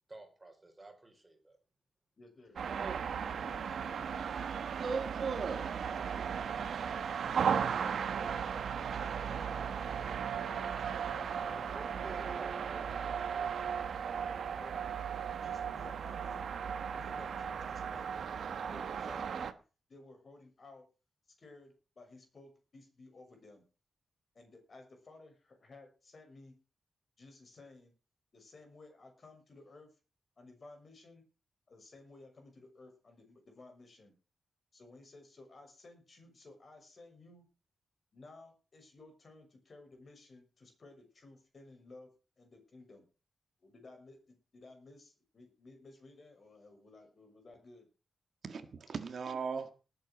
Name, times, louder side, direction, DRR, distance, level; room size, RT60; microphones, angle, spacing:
voice 1, 0.1-1.6 11.5-13.6, right 2 dB, 15° right, 4.5 m, -52 dB
voice 2, 2.2-2.6 3.1-4.2 7.5-8.4 8.9-12.2 12.7-13.3 14.6-14.7 15.4-16.4 16.9-18.3 18.7-19.5 19.9-20.9 21.4-23.6 24.3-26.6 27.2-27.9 28.3-30.0 30.4-31.2 31.7-34.1 34.7-37.4 38.1-42.1 42.4-43.1 43.6-47.9, left 2 dB, 40° left, 6.4 m, -56 dB
sound 1, 2.6-19.5, right 7 dB, 70° right, 1.4 m, -36 dB
voice 3, 2.7-3.0 4.8-5.8 48.4-49.7, right 5 dB, 55° right, 1.7 m, -38 dB
19.0 x 8.3 x 6.2 m
wide cardioid pair, 150°, 0 cm